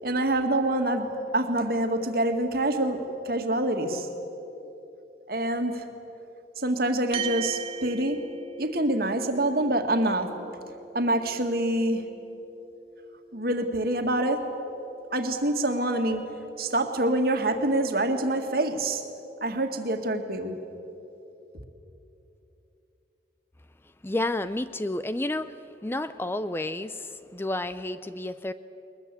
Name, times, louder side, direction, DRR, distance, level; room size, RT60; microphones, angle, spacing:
voice 1, 0.0-4.1 5.3-5.8 6.6-8.2 8.6-10.3 10.9-12.0 13.3-14.4 15.1-16.2 16.6-19.0 19.4-20.6, right 1 dB, 55° right, 6 dB, 1.9 m, -26 dB
sound 1, 7.1-15.8, right 7 dB, 35° right, 1.1 m, -42 dB
voice 2, 24.0-25.5 25.8-28.5, left 2 dB, 15° left, 13 dB, 0.4 m, -30 dB
22.0 x 20.5 x 8.3 m, 3.0 s
head